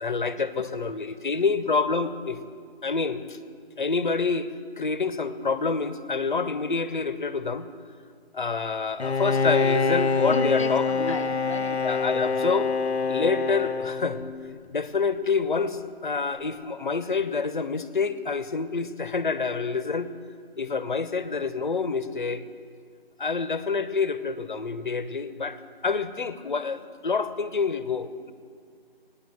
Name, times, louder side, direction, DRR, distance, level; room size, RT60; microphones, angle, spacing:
voice 1, 0.0-2.4 2.8-3.4 3.8-7.7 8.3-11.2 11.8-12.7 13.1-14.2 14.7-20.1 20.6-22.4 23.2-25.6 25.8-28.3, left 4 dB, 50° left, 13 dB, 0.9 m, -27 dB
Bowed string instrument, 9.0-14.6, left 4 dB, 90° left, 0.7 m, -26 dB
voice 2, 10.3-11.8, left 3 dB, 30° left, 5 dB, 0.6 m, -34 dB
17.0 x 10.5 x 7.9 m, 2.1 s
figure-of-eight pair, 165°, 31 cm